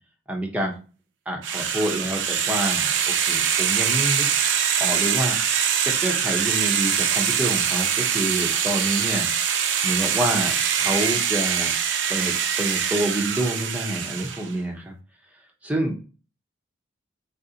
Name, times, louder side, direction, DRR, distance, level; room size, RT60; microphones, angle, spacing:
voice 1, 0.3-0.7 1.3-4.3 4.8-5.4 5.8-9.3 9.8-11.7 12.1-14.9 15.6-16.0, right 1 dB, 10° right, 0 dB, 0.6 m, -27 dB
sound 1, 1.4-14.5, right 8 dB, 70° right, 0.5 m, -23 dB
4.0 x 2.5 x 2.7 m, 0.35 s
head